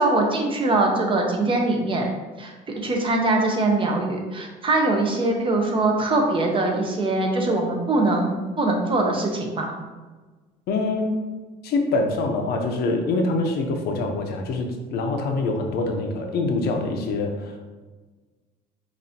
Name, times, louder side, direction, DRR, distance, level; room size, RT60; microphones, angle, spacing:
voice 1, 0.0-2.1 2.4-9.7, right 2 dB, 30° right, 1 dB, 0.8 m, -22 dB
voice 2, 10.7-11.1 11.6-17.6, left 3 dB, 70° left, 3 dB, 0.7 m, -25 dB
5.2 x 2.7 x 2.8 m, 1.3 s
cardioid pair, 110°, 17 cm